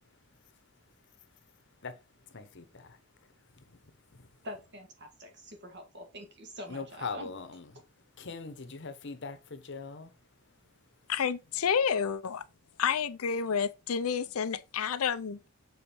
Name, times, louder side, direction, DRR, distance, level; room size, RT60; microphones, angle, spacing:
voice 1, 2.3-3.0 3.6-3.8 6.7-7.7 8.2-10.1, left 4 dB, 55° left, 0.9 m, -41 dB
voice 2, 4.4-7.3, left 1 dB, 55° right, 1.8 m, -45 dB
voice 3, 11.1-12.4 12.8-15.5, left 7 dB, 80° left, 0.5 m, -30 dB
7.0 x 4.0 x 4.4 m
head